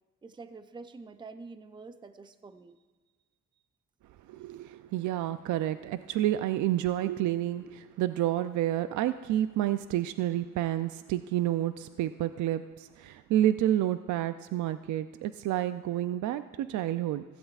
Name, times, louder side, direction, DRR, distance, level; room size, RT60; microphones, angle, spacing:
voice 1, 0.2-2.8, right 4 dB, 15° right, 10 dB, 0.5 m, -47 dB
voice 2, 4.3-17.2, right 13 dB, 75° right, 11 dB, 0.5 m, -29 dB
16.0 x 15.0 x 2.4 m, 1.3 s
cardioid pair, 90°, 30 cm